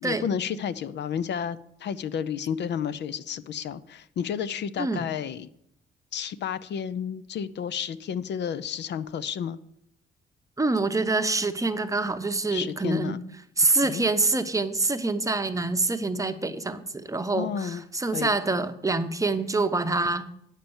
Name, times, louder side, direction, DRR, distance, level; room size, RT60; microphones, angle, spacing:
voice 1, 0.0-5.5 6.1-9.6 12.5-13.2 13.7-14.0 17.3-17.8 18.1-18.3, left 8 dB, 60° left, 15 dB, 0.6 m, -31 dB
voice 2, 10.6-13.2 13.6-20.3, right 3 dB, 15° right, 9 dB, 0.8 m, -26 dB
9.0 x 6.7 x 7.1 m, 0.74 s
cardioid pair, 90°, 20 cm